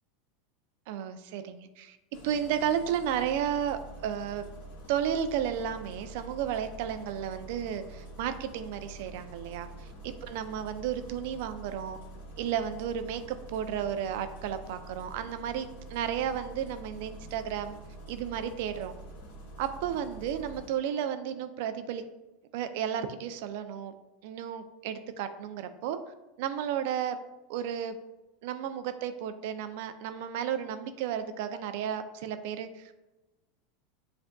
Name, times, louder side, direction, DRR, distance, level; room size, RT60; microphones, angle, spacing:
voice 1, 0.9-2.0 2.2-4.4 4.9-9.7 10.0-12.0 12.4-17.8 18.1-18.9 19.6-22.0 22.5-23.9 24.2-26.0 26.4-27.2 27.5-28.0 28.4-33.0, right 9 dB, 65° right, 10 dB, 0.4 m, -33 dB
Engine starting, 2.1-20.7, right 2 dB, 80° left, 1.2 m, -46 dB
7.3 x 2.5 x 2.2 m, 1.1 s
hypercardioid pair, 95°, 0 cm